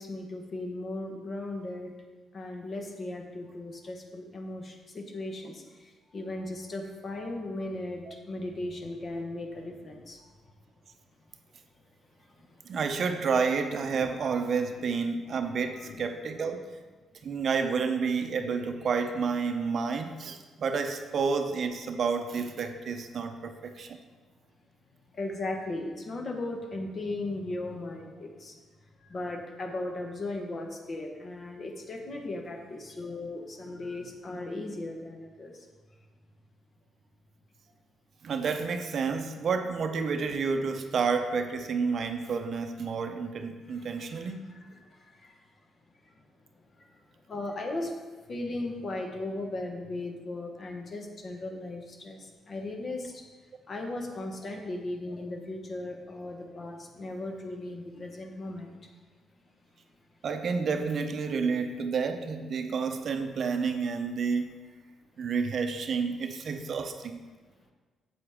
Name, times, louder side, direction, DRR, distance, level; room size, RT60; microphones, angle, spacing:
voice 1, 0.0-2.0 2.3-10.4 12.2-12.7 14.7-15.0 15.7-16.0 25.1-28.6 29.0-35.7 43.6-45.5 46.0-46.1 46.8-53.3 53.7-58.9, left 2 dB, 45° left, 3 dB, 1.3 m, -37 dB
voice 2, 12.6-16.7 17.2-24.0 38.2-44.4 60.2-64.6 65.2-67.2, right 5 dB, 55° right, 7 dB, 0.7 m, -30 dB
8.0 x 7.9 x 3.6 m, 1.4 s
cardioid pair, 90°, 0 cm